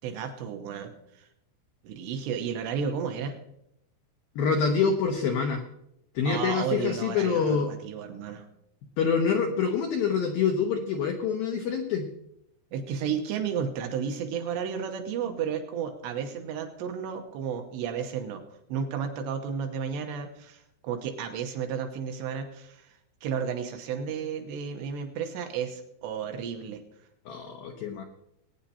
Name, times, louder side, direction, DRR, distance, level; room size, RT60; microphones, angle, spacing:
voice 1, 0.0-1.3 1.8-3.4 6.3-8.5 12.7-18.4 18.7-26.8, right 7 dB, 75° right, 6 dB, 2.9 m, -33 dB
voice 2, 4.4-5.6 6.2-7.7 9.0-12.1 27.3-28.0, left 6 dB, 80° left, 3 dB, 2.1 m, -26 dB
21.5 x 9.5 x 2.8 m, 0.80 s
omnidirectional pair, 5.5 m